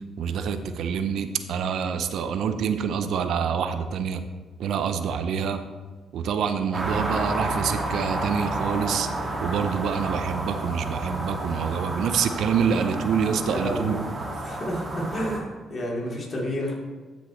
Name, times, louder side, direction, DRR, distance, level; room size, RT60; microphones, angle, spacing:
voice 1, 0.2-4.2 4.6-5.6 6.1-9.1 9.4-14.0, right 7 dB, 75° right, 9 dB, 0.6 m, -26 dB
sound 1, 6.7-15.4, right 2 dB, 30° right, 2.0 m, -30 dB
voice 2, 13.3-14.0 14.4-16.7, equal, 45° left, -3 dB, 3.0 m, -30 dB
12.5 x 6.1 x 3.1 m, 1.4 s
cardioid pair, 80°, 0 cm